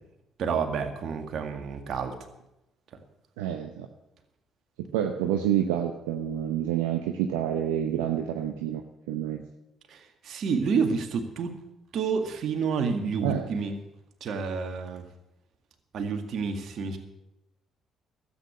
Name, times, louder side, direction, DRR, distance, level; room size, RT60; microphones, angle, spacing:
voice 1, 0.4-2.1 9.9-11.5 11.9-13.8 14.2-15.0 15.9-17.0, right 5 dB, 60° right, 5 dB, 2.0 m, -29 dB
voice 2, 3.4-3.9 4.9-8.8 9.1-9.4 13.2-13.5, right 10 dB, 85° right, 4 dB, 0.8 m, -28 dB
13.0 x 8.7 x 8.3 m, 0.89 s
hypercardioid pair, 50°, 0 cm